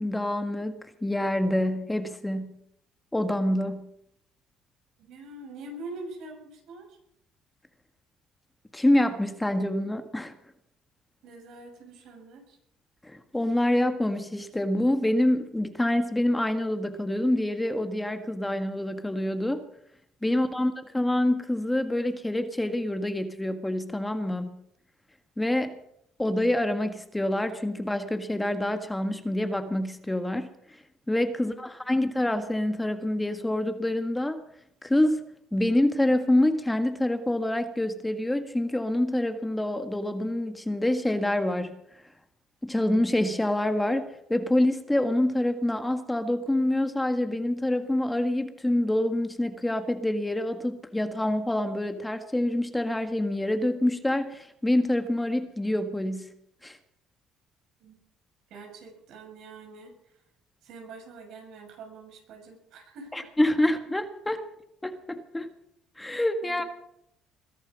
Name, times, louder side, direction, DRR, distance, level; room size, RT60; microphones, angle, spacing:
voice 1, 0.0-2.6 3.1-3.9 8.7-10.3 13.0-19.6 20.2-24.6 25.4-25.8 26.2-30.5 31.1-34.4 34.8-35.2 35.5-41.8 42.6-56.3 56.6-56.8 63.1-64.4 64.8-65.5 66.0-66.6, left 1 dB, 10° left, 8 dB, 1.7 m, -26 dB
voice 2, 5.0-7.0 11.2-12.6 20.3-20.7 31.3-32.0 57.8-58.0 58.5-60.1 60.6-63.3 64.4-64.5 66.4-66.7, right 2 dB, 75° right, 3 dB, 6.7 m, -45 dB
21.5 x 11.5 x 5.5 m, 0.75 s
supercardioid pair, 80°, 0 cm